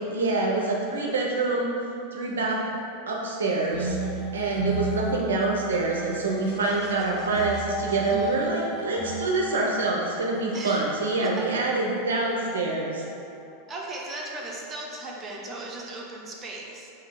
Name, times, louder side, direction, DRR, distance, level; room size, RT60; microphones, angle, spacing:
voice 1, 0.0-1.7 2.1-2.6 3.1-4.0 4.3-13.0, right 3 dB, 70° right, -2 dB, 0.4 m, -26 dB
sound 1, 3.3-14.6, left 1 dB, 30° left, 0.5 m, -40 dB
sound 2, 3.7-11.2, right 3 dB, 70° left, 1.4 m, -35 dB
voice 2, 13.7-16.9, right 2 dB, 25° right, -3 dB, 0.6 m, -37 dB
3.5 x 2.6 x 3.7 m, 2.6 s
figure-of-eight pair, 85°, 0 cm